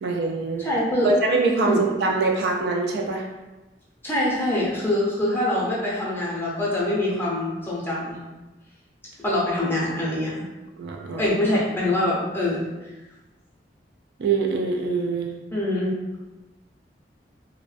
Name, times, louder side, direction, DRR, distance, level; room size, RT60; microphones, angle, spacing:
voice 1, 0.0-0.7 1.0-3.3 10.8-11.4 14.2-15.4, right 3 dB, 65° right, 1 dB, 0.3 m, -24 dB
voice 2, 0.6-1.1 1.6-1.8 4.0-8.2 9.2-10.3 11.2-12.6 15.5-15.9, left 1 dB, 15° left, -6 dB, 0.5 m, -24 dB
2.4 x 2.1 x 2.4 m, 1.1 s
head